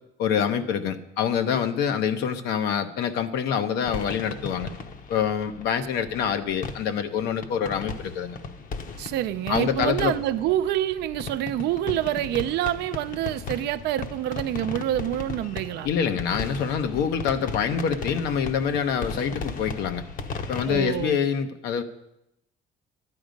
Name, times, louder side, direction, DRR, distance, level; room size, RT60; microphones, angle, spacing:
voice 1, 0.2-4.7 5.1-8.4 9.5-10.1 15.8-20.0 20.5-21.8, left 7 dB, 85° left, 0.9 m, -26 dB
sound 1, 3.8-21.1, left 4 dB, 55° left, 0.9 m, -36 dB
voice 2, 9.0-15.9 20.7-21.2, right 13 dB, 80° right, 0.5 m, -27 dB
11.5 x 9.8 x 5.2 m
cardioid pair, 110°, 17 cm